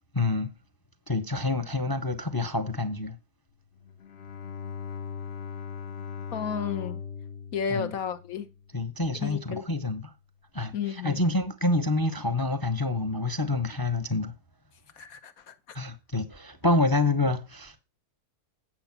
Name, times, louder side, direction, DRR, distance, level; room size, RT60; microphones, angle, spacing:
voice 1, 0.1-0.5 1.1-3.1 7.7-7.9 8.7-10.1 10.5-14.3 15.7-17.8, left 2 dB, 20° left, 0.6 m, -27 dB
Bowed string instrument, 3.8-9.0, left 6 dB, 50° left, 1.0 m, -39 dB
voice 2, 6.3-7.0 7.5-8.5 9.2-9.6 10.7-11.2 15.0-15.5, left 7 dB, 70° left, 1.5 m, -32 dB
8.9 x 6.8 x 5.9 m
omnidirectional pair, 1.6 m